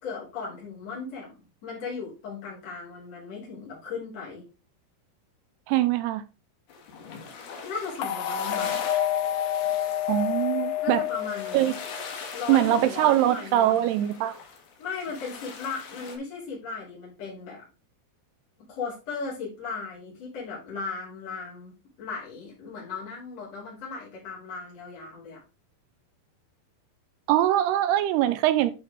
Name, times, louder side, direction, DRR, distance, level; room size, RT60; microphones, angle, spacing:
voice 1, 0.0-4.5 7.2-7.4 7.6-8.8 10.8-11.8 12.3-13.9 14.8-17.7 18.6-25.4, left 5 dB, 40° left, 4.5 m, -37 dB
voice 2, 5.7-6.2 10.1-11.0 11.5-11.7 12.5-14.3 27.3-28.7, right 13 dB, 90° right, 2.7 m, -22 dB
sound 1, 6.7-16.2, left 5 dB, 70° left, 3.4 m, -42 dB
sound 2, 8.0-12.2, left 11 dB, 90° left, 2.8 m, -29 dB
11.0 x 4.8 x 3.6 m
omnidirectional pair, 4.6 m